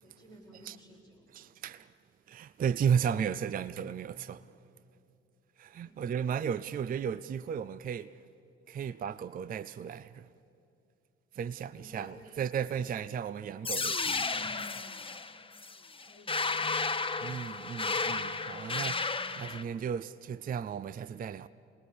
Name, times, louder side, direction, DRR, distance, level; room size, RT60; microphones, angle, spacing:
voice 1, 0.0-1.3 5.8-6.2 11.7-12.4 16.0-17.3, equal, 80° right, 4.8 m, -55 dB
voice 2, 1.3-1.9 2.3-4.5 5.6-8.1 8.7-10.3 11.3-14.7 17.2-21.5, right 7 dB, 25° right, 0.5 m, -34 dB
sound 1, 13.6-19.6, left 4 dB, 15° left, 0.9 m, -33 dB
27.5 x 20.0 x 6.8 m
figure-of-eight pair, 40°, 32 cm